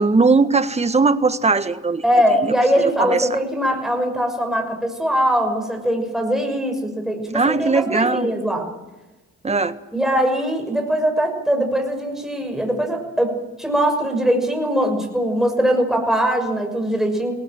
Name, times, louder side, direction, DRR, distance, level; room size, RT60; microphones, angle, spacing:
voice 1, 0.0-2.0 2.4-2.5 2.8-3.4 7.3-8.3 9.4-9.7, right 4 dB, 20° right, 11 dB, 1.5 m, -19 dB
voice 2, 2.0-8.7 9.9-13.3 13.6-17.3, equal, ahead, 2 dB, 6.2 m, -21 dB
21.5 x 17.5 x 8.9 m, 1.1 s
cardioid pair, 90°, 30 cm